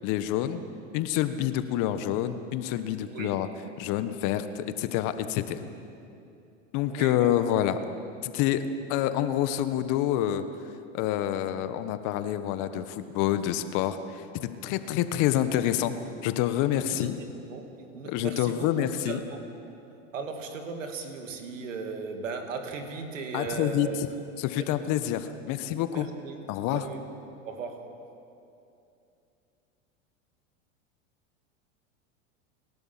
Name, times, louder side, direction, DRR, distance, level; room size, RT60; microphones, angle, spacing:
voice 1, 0.0-0.7 0.9-3.5 3.8-5.6 6.7-7.8 8.2-8.6 8.9-10.4 10.9-15.9 16.2-17.2 18.0-19.2 23.3-23.9 24.4-26.1 26.5-26.9, left 12 dB, 55° left, 10 dB, 1.4 m, -27 dB
voice 2, 6.9-7.5 16.9-17.1 17.5-19.4 20.1-24.1 24.5-24.8 25.9-26.4 26.7-27.1 27.4-27.9, right 4 dB, 80° right, 5 dB, 2.7 m, -37 dB
30.0 x 12.0 x 7.5 m, 2.7 s
hypercardioid pair, 95°, 38 cm